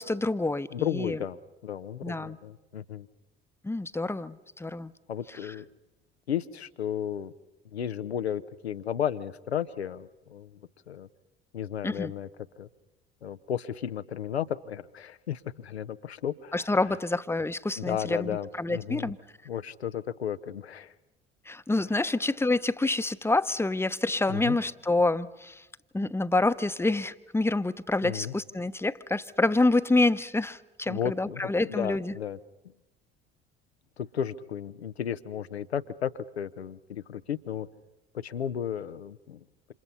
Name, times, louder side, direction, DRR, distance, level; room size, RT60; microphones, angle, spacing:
voice 1, 0.0-1.2 2.0-2.4 3.6-4.9 5.3-5.5 11.8-12.1 16.5-19.2 21.4-25.7 25.9-32.1, left 2 dB, 10° left, 13 dB, 0.9 m, -27 dB
voice 2, 0.7-3.1 5.1-5.7 6.3-7.3 7.7-10.6 10.9-11.1 11.5-12.3 12.6-12.7 13.2-16.7 17.8-19.1 19.5-20.9 24.3-24.6 28.0-28.3 30.9-32.4 34.0-37.7 38.1-39.4, left 9 dB, 85° left, 12 dB, 0.8 m, -34 dB
28.5 x 27.5 x 5.6 m, 1.0 s
figure-of-eight pair, 55°, 31 cm